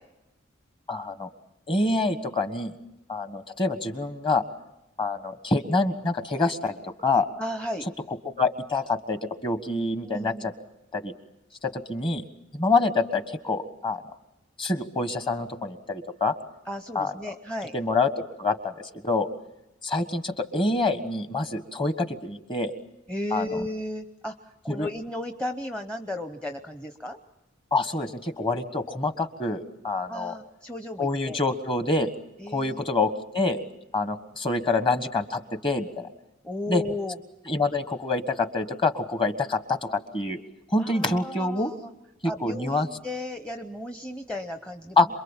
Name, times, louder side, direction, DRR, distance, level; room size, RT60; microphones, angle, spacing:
voice 1, 0.9-1.3 1.7-2.7 3.1-4.4 5.0-7.3 8.2-10.3 10.9-11.1 11.6-12.2 12.5-14.0 14.6-16.3 16.9-17.1 17.7-18.1 18.4-19.3 19.8-22.7 23.3-23.6 24.7-24.9 27.7-30.4 31.0-32.1 32.5-33.6 33.9-36.1 36.7-36.8 37.5-40.4 40.7-41.7 42.2-42.9 45.0-45.1, left 3 dB, 25° left, 9 dB, 1.4 m, -26 dB
voice 2, 7.4-7.9 10.0-10.5 16.7-17.7 23.1-27.2 30.1-31.4 32.4-32.8 36.4-37.2 40.8-41.9 42.2-45.0, left 1 dB, 5° left, 5 dB, 0.8 m, -34 dB
27.5 x 22.5 x 7.4 m, 0.92 s
head